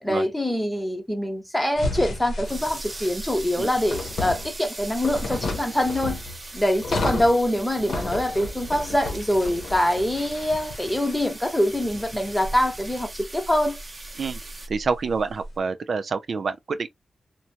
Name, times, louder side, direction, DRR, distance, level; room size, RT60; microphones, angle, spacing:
voice 1, 0.0-6.2 6.5-13.8, left 1 dB, 10° left, 1.0 m, -24 dB
sound 1, 1.8-15.5, left 2 dB, 80° left, 0.7 m, -33 dB
sound 2, 2.4-14.7, right 2 dB, 40° right, 0.8 m, -40 dB
voice 2, 14.7-17.0, right 4 dB, 70° right, 0.3 m, -27 dB
2.8 x 2.1 x 2.7 m
cardioid pair, 60°, 0 cm